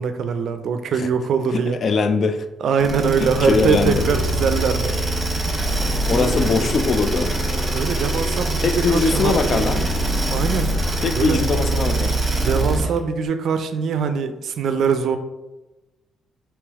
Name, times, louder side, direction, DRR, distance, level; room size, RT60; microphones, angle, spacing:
voice 1, 0.0-1.8 2.6-5.0 6.1-6.3 7.7-9.7 10.3-10.7 11.1-11.4 12.4-15.2, right 6 dB, 70° right, 9 dB, 0.4 m, -22 dB
voice 2, 1.5-2.4 3.2-4.0 6.0-7.3 8.6-9.9 11.0-12.2, left 4 dB, 50° left, 9 dB, 0.3 m, -21 dB
sound 1, 2.8-13.0, right 1 dB, 15° right, 1.2 m, -23 dB
3.2 x 3.0 x 3.5 m, 1.0 s
cardioid pair, 90°, 0 cm